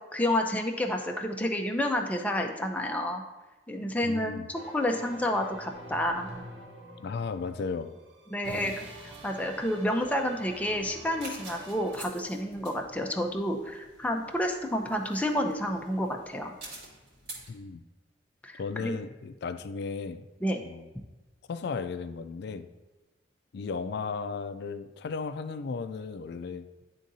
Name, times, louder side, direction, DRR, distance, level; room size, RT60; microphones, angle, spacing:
voice 1, 0.1-3.2 3.7-6.3 8.3-16.5 18.4-19.0 20.4-20.6, left 1 dB, 10° left, 2 dB, 0.6 m, -30 dB
voice 2, 4.0-4.5 7.0-7.9 8.5-8.7 17.5-17.8 18.6-20.3 20.6-20.9 21.5-22.7 23.5-26.7, left 5 dB, 60° left, 11 dB, 0.4 m, -35 dB
sound 1, 4.5-12.0, right 1 dB, 85° right, 1.0 m, -46 dB
sound 2, 9.1-17.5, right 2 dB, 60° right, 2.1 m, -49 dB
10.5 x 3.7 x 2.7 m, 1.1 s
head